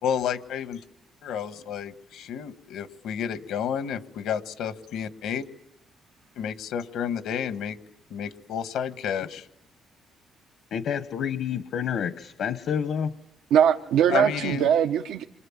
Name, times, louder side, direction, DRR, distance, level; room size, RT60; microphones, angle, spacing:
voice 1, 0.0-0.8 1.2-5.4 6.3-7.8 8.1-9.5 14.1-14.7, left 8 dB, 80° left, 11 dB, 1.7 m, -30 dB
voice 2, 10.7-13.2, left 8 dB, 65° left, 12 dB, 1.1 m, -29 dB
voice 3, 13.5-15.2, right 9 dB, 90° right, 5 dB, 1.0 m, -21 dB
28.0 x 25.5 x 7.4 m, 0.82 s
cardioid pair, 125°, 0 cm